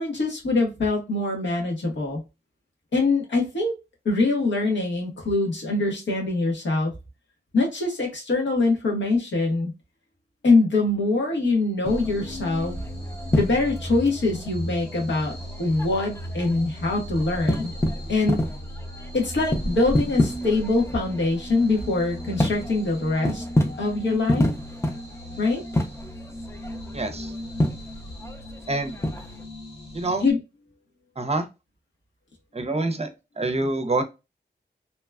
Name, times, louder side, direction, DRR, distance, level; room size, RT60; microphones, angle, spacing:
voice 1, 0.0-2.2 2.9-3.7 4.0-6.9 7.5-9.7 10.4-12.8 13.3-17.7 18.1-18.5 19.1-23.4 23.8-24.5 25.4-25.6 30.2-30.4, left 3 dB, 85° left, 1.2 m, -23 dB
sound 1, 11.8-29.4, left 1 dB, 15° left, 0.5 m, -30 dB
sound 2, 11.9-30.3, equal, 65° left, 1.2 m, -37 dB
voice 2, 26.9-27.3 28.7-29.0 29.9-30.2 31.2-31.5 32.5-33.1 33.4-34.0, right 2 dB, 35° right, 0.6 m, -26 dB
2.9 x 2.2 x 2.2 m
wide cardioid pair, 70°, 18 cm